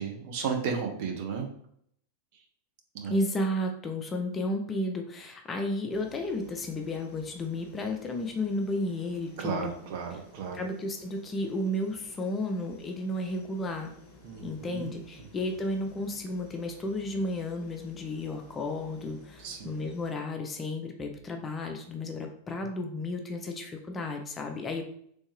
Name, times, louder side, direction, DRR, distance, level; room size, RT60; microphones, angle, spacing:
voice 1, 0.0-1.5 2.9-3.2 9.4-10.6 14.2-14.9 19.4-19.8, right 6 dB, 50° right, 3 dB, 0.7 m, -34 dB
voice 2, 3.1-9.7 10.5-13.9 14.4-24.8, left 1 dB, 20° left, 4 dB, 0.5 m, -33 dB
sound 1, 5.9-20.1, left 2 dB, 35° left, 1.2 m, -55 dB
3.3 x 2.7 x 3.1 m, 0.67 s
figure-of-eight pair, 90°, 0 cm